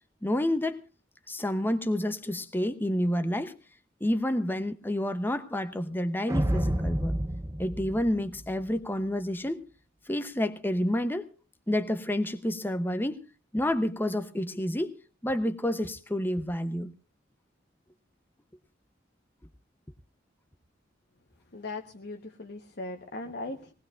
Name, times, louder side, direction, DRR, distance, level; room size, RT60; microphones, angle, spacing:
voice 1, 0.2-0.8 1.3-3.5 4.0-7.1 7.6-9.6 10.1-11.3 11.7-13.2 13.5-14.9 15.2-16.9, left 1 dB, 10° left, 0.8 m, -29 dB
sound 1, 6.3-8.8, right 1 dB, 15° right, 0.7 m, -29 dB
voice 2, 21.5-23.7, left 2 dB, 60° left, 1.1 m, -39 dB
21.5 x 19.0 x 2.5 m
head